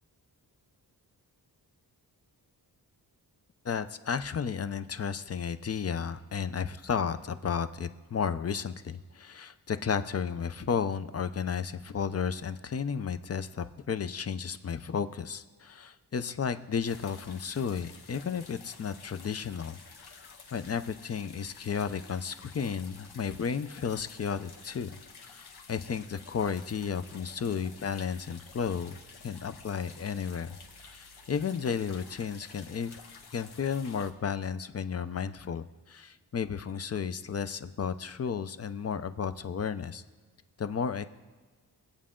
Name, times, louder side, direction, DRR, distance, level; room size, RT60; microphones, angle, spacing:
voice 1, 3.6-24.9 25.2-29.0 29.2-30.6 30.8-33.0 33.3-40.0 40.6-41.1, left 6 dB, 40° left, 12 dB, 0.5 m, -33 dB
sound 1, 16.8-34.1, left 5 dB, 75° left, 1.2 m, -52 dB
23.0 x 8.5 x 3.7 m, 1.4 s
wide cardioid pair, 165°, 39 cm